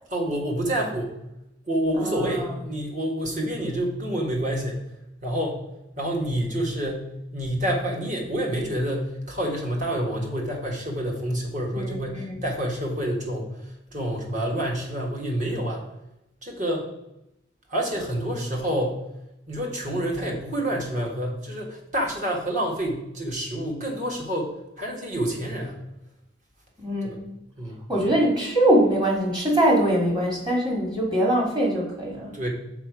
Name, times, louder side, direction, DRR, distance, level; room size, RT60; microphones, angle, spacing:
voice 1, 0.1-1.1 1.7-4.8 5.2-5.6 6.0-15.9 16.4-16.9 17.7-19.0 19.5-25.8 27.0-27.2 27.6-27.8 32.3-32.5, right 1 dB, 40° right, 0 dB, 1.6 m, -28 dB
voice 2, 2.0-2.3 11.7-12.4 26.8-27.3 27.9-32.3, right 1 dB, 25° right, -2 dB, 1.9 m, -23 dB
6.0 x 4.9 x 4.7 m, 0.88 s
head